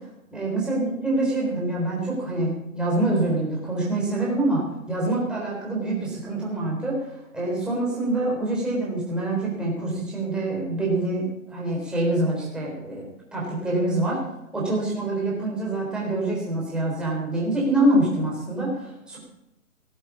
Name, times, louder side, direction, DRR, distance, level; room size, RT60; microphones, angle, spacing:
voice 1, 0.3-13.0 13.3-14.2 14.5-19.2, right 2 dB, ahead, -5 dB, 3.8 m, -25 dB
18.5 x 8.5 x 8.4 m, 0.85 s
hypercardioid pair, 165°, 42 cm